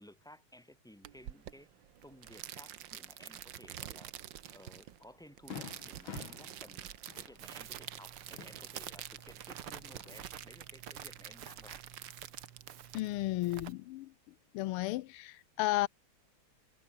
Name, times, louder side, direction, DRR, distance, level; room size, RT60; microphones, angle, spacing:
voice 1, 0.0-1.7 2.0-4.2 4.5-11.8, left 1 dB, ahead, 3.3 m, -57 dB
sound 1, 1.0-13.7, right 11 dB, 65° right, 1.6 m, -48 dB
Fireworks, 4.5-4.6 5.0-5.1 5.5-9.3 9.6-10.4, left 7 dB, 65° left, 2.7 m, -49 dB
Crackle, 7.4-13.7, right 10 dB, 80° right, 2.3 m, -51 dB
voice 2, 12.9-14.1 14.5-15.9, left 17 dB, 90° left, 1.5 m, -33 dB
omnidirectional pair, 2.4 m